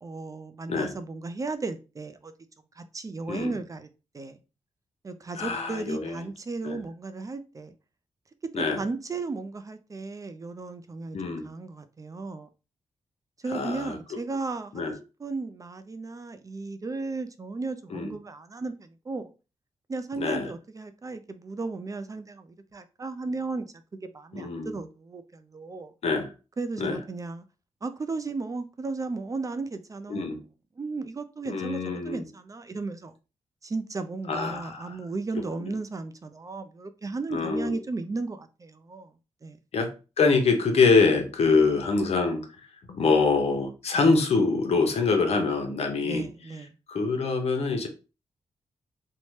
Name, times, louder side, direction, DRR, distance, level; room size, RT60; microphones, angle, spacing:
voice 1, 0.0-2.3 2.8-3.9 4.1-4.4 5.0-7.7 8.4-12.5 13.4-19.3 19.9-23.7 23.9-25.9 26.6-27.4 27.8-30.3 30.8-33.1 33.6-39.1 39.4-39.6 46.0-46.7, right 3 dB, 30° right, 0.3 m, -35 dB
voice 2, 5.4-6.2 6.6-6.8 8.5-8.8 11.1-11.5 13.5-14.0 14.7-15.0 17.9-18.1 20.2-20.5 24.3-24.8 26.0-26.3 26.8-27.0 30.1-30.4 31.5-32.2 34.3-35.0 35.6-35.7 37.3-37.8 39.7-42.4 42.9-46.2 46.9-47.9, left 4 dB, 65° left, 0.7 m, -25 dB
2.8 x 2.1 x 3.1 m
cardioid pair, 75°, 11 cm